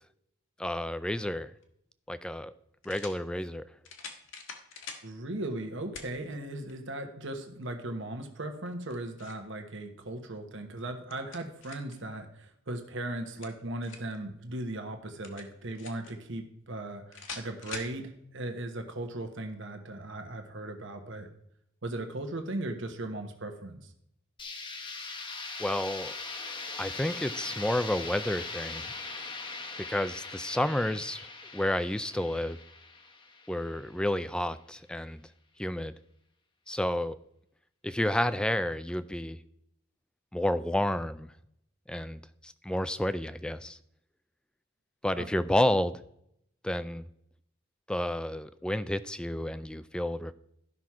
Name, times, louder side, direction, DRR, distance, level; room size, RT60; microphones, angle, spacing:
voice 1, 0.6-1.5 2.1-2.5 2.9-3.7 25.6-26.2 26.8-28.8 29.8-31.3 31.5-32.6 33.5-35.2 35.6-35.9 36.7-37.2 37.8-39.4 40.3-41.3 41.9-43.8 45.0-46.0 46.6-47.1 47.9-50.3, left 1 dB, 5° left, 14 dB, 0.3 m, -30 dB
sound 1, 1.6-1.7 2.8-3.2 3.8-5.1 5.9-6.1 6.7-6.8 8.7-9.5 10.8-12.0 13.2-14.2 15.2-16.1 17.1-17.9, left 5 dB, 65° left, 1.5 m, -44 dB
voice 2, 5.0-21.3 21.8-23.9 45.1-45.3, right 1 dB, 60° right, 5 dB, 1.2 m, -38 dB
sound 2, 24.4-34.2, left 3 dB, 25° left, 1.0 m, -40 dB
12.5 x 5.9 x 4.7 m, 0.75 s
head